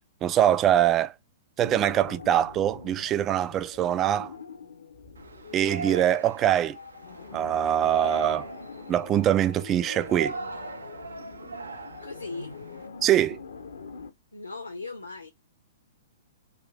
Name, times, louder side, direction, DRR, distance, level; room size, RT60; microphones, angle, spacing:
voice 1, 0.2-1.1 1.6-4.3 5.5-6.8 7.3-8.5 8.9-10.4 13.0-13.4, right 11 dB, 25° right, 0.3 m, -23 dB
sound 1, 1.6-14.1, left 5 dB, 65° left, 0.7 m, -44 dB
Yell, 5.2-12.9, right 4 dB, 70° right, 0.6 m, -40 dB
voice 2, 12.0-12.6 14.3-15.3, left 3 dB, 85° left, 1.0 m, -38 dB
3.6 x 2.5 x 2.3 m
figure-of-eight pair, 110°, 0 cm